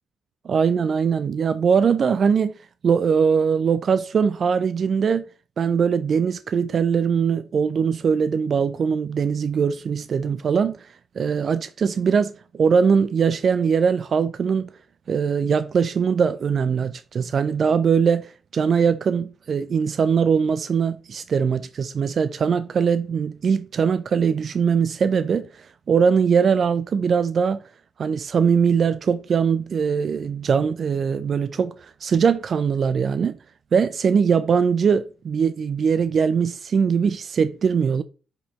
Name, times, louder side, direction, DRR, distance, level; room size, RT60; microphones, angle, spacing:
voice 1, 0.4-2.6 2.8-5.2 5.6-10.9 11.2-14.7 15.1-27.6 28.0-33.4 33.7-38.0, right 6 dB, 50° right, 0.4 m, -21 dB
5.3 x 5.0 x 4.1 m
figure-of-eight pair, 40°, 0 cm